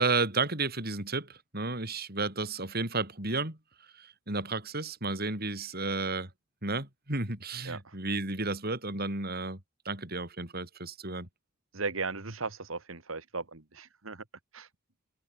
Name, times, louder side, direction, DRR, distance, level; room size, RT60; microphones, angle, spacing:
voice 1, 0.0-3.6 3.9-6.3 6.6-9.6 9.8-11.3, right 3 dB, 50° right, 6.0 m, -32 dB
voice 2, 11.7-14.2 14.5-14.7, right 4 dB, 75° right, 2.0 m, -37 dB
head